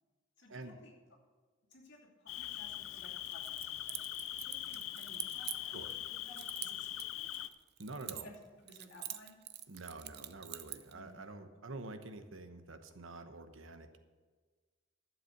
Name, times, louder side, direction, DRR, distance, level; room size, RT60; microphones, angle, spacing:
voice 1, 0.4-0.9 1.7-3.9 4.4-5.7 6.1-7.3 8.0-8.3 8.6-9.4 10.9-11.1, left 2 dB, 60° left, -2 dB, 2.7 m, -57 dB
Cricket, 2.3-7.5, left 13 dB, 85° left, 0.5 m, -42 dB
Keys jangling, 3.3-6.0 6.4-8.4 8.7-10.9, right 14 dB, 55° right, 0.5 m, -45 dB
voice 2, 7.8-8.3 9.7-14.0, right 2 dB, 80° right, 8 dB, 1.0 m, -47 dB
11.5 x 7.6 x 6.6 m, 1.4 s
head